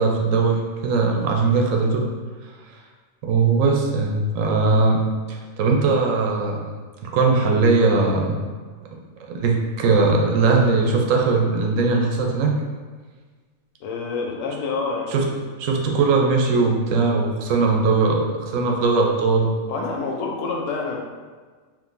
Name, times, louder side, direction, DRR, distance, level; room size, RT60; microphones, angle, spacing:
voice 1, 0.0-2.1 3.2-6.6 7.0-8.4 9.3-12.6 15.1-15.3 15.6-19.5, right 4 dB, 80° right, 1 dB, 1.0 m, -20 dB
voice 2, 13.8-15.4 19.7-21.0, left 4 dB, 80° left, 0 dB, 0.9 m, -27 dB
3.7 x 2.5 x 2.5 m, 1.5 s
omnidirectional pair, 1.3 m